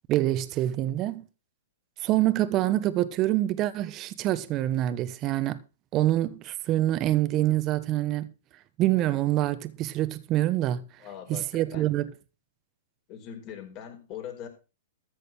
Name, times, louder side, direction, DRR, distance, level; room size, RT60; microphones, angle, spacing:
voice 1, 0.1-1.3 2.0-5.6 5.9-8.3 8.8-10.8 11.3-12.1, right 14 dB, 35° right, 1.2 m, -26 dB
voice 2, 11.0-11.5 11.7-11.9 13.1-14.5, left 9 dB, 40° left, 4.9 m, -41 dB
14.0 x 6.6 x 6.2 m
hypercardioid pair, 120°, 0 cm